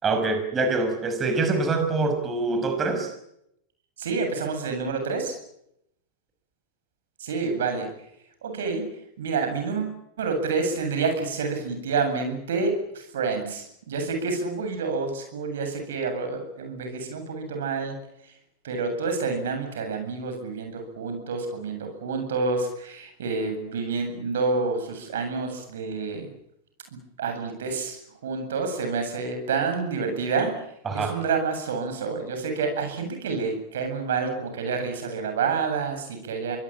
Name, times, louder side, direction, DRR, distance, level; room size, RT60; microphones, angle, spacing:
voice 1, 0.0-3.1 30.9-31.2, right 3 dB, 25° right, 6 dB, 6.0 m, -25 dB
voice 2, 4.0-5.3 7.2-7.9 8.4-8.9 9.2-18.0 18.2-18.3 18.6-26.3 26.9-30.7 30.9-36.6, right 4 dB, 70° right, 6 dB, 8.0 m, -28 dB
25.5 x 20.5 x 9.0 m, 0.78 s
figure-of-eight pair, 95°, 0 cm